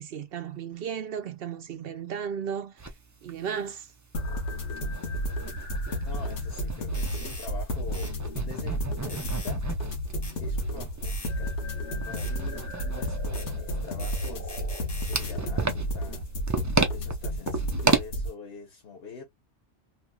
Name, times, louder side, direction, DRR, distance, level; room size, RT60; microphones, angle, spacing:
voice 1, 0.0-2.7 3.2-3.9, right 7 dB, 65° right, 0.7 m, -34 dB
sound 1, 2.8-2.9 3.3-3.4 3.7-3.8 4.3-7.4 7.7-18.0, right 4 dB, 25° right, 0.4 m, -32 dB
sound 2, 4.1-18.3, equal, 85° left, 1.3 m, -32 dB
voice 2, 6.0-8.1 8.4-9.6 10.4-11.5 12.0-14.6 15.1-16.3 16.9-19.2, left 5 dB, 60° left, 1.1 m, -44 dB
sound 3, 6.9-7.5 7.9-8.1 9.1-9.6 10.2-10.4 11.0-11.3 12.2-12.3 13.3-13.5 14.0-15.4, left 2 dB, 25° left, 0.8 m, -42 dB
3.0 x 2.9 x 2.2 m
omnidirectional pair, 1.2 m